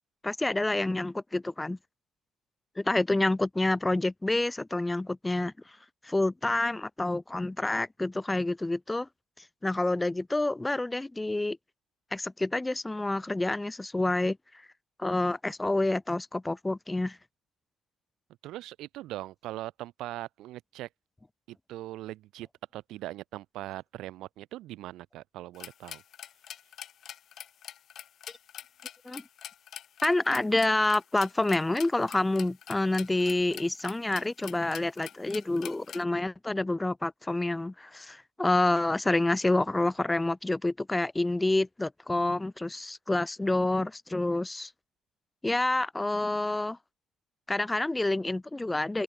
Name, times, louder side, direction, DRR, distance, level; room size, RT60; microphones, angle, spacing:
voice 1, 0.2-1.8 2.8-5.5 6.0-9.1 9.6-11.6 12.1-14.4 15.0-17.2 29.0-29.2 30.0-44.7 45.4-46.8 47.5-49.0, left 2 dB, 10° left, 0.8 m, -28 dB
voice 2, 18.4-20.9 21.5-22.5 22.7-26.0, right 15 dB, 85° right, 2.0 m, -40 dB
sound 1, 25.5-36.0, left 10 dB, 55° left, 6.4 m, -44 dB
cardioid pair, 135°, 0 cm